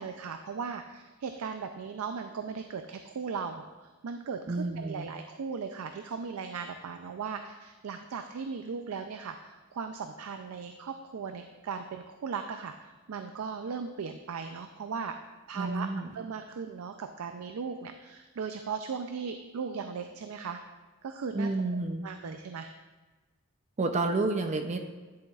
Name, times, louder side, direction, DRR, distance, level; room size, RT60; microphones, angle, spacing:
voice 1, 0.0-15.1 15.5-20.6 21.0-22.7, right 5 dB, 90° right, 7 dB, 0.4 m, -38 dB
voice 2, 4.5-5.1 15.5-16.1 21.3-22.1 23.8-24.8, right 3 dB, 35° right, 6 dB, 0.5 m, -30 dB
10.5 x 6.9 x 2.4 m, 1.3 s
head